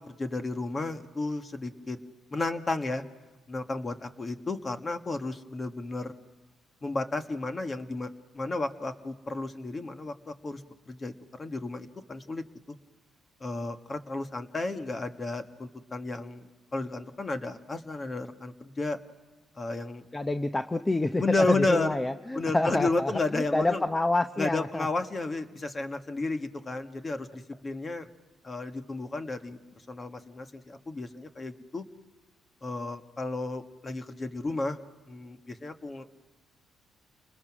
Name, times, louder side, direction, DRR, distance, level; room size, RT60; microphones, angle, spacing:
voice 1, 0.1-2.0 2.3-3.0 3.5-6.1 6.8-8.1 8.3-10.6 10.9-11.1 11.4-12.7 13.4-19.0 19.6-20.0 21.2-22.0 22.3-23.8 24.4-27.3 27.6-28.1 28.4-29.6 29.9-31.8 32.6-34.8 35.1-36.1, left 3 dB, 30° left, 7 dB, 1.6 m, -32 dB
voice 2, 20.1-24.9, left 2 dB, 15° left, 9 dB, 0.8 m, -28 dB
29.5 x 20.5 x 6.2 m, 1.3 s
cardioid pair, 90°, 0 cm